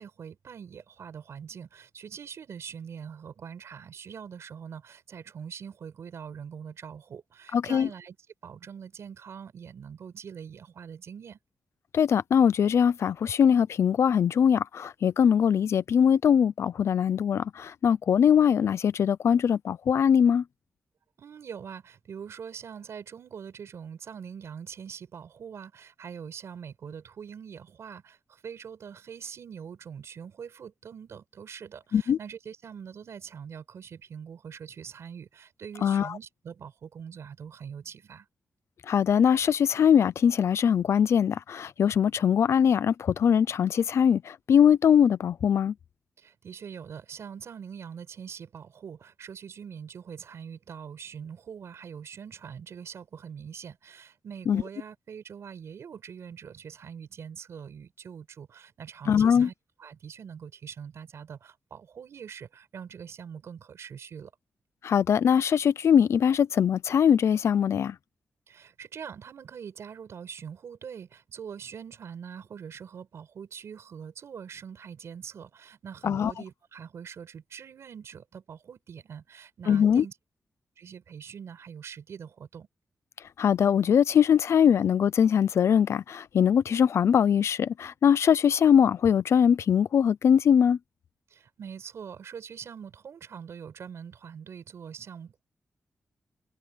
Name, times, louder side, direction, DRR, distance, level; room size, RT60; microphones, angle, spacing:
voice 1, 0.0-8.2 8.4-11.4 21.2-38.3 46.2-59.5 59.8-64.3 68.5-80.1 80.8-82.7 91.3-95.4, right 7 dB, 75° right, 5.8 m, -43 dB
voice 2, 7.5-7.9 11.9-20.4 31.9-32.2 35.8-36.2 38.9-45.7 54.5-54.6 59.1-59.5 64.8-68.0 76.0-76.3 79.7-80.0 83.4-90.8, left 8 dB, 75° left, 0.6 m, -22 dB
wide cardioid pair, 155°, 5 cm